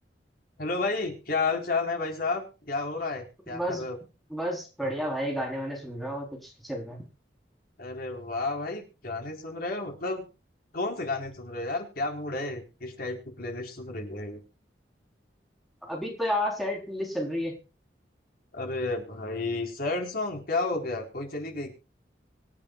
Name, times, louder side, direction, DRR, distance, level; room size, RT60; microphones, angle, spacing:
voice 1, 0.6-4.0 7.8-10.3 10.7-14.4 18.5-21.7, left 3 dB, 60° left, 2 dB, 4.2 m, -31 dB
voice 2, 3.5-3.8 4.3-7.0 15.8-17.6, equal, ahead, -1 dB, 4.0 m, -31 dB
25.5 x 8.9 x 2.4 m, 0.31 s
head